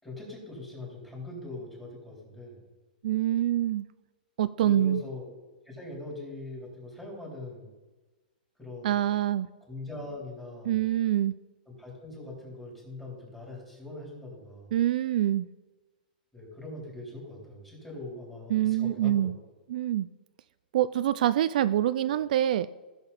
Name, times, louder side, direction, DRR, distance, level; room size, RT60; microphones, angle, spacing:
voice 1, 0.0-2.6 4.6-5.3 5.7-7.7 8.6-9.0 9.7-10.8 11.7-14.7 16.3-19.3, left 2 dB, 5° left, -4 dB, 3.6 m, -41 dB
voice 2, 3.0-3.8 4.4-5.0 8.8-9.5 10.7-11.3 14.7-15.5 18.5-19.4 19.7-20.1 20.7-22.7, right 12 dB, 60° right, 13 dB, 0.3 m, -25 dB
15.0 x 6.8 x 4.2 m, 1.2 s
hypercardioid pair, 155°, 5 cm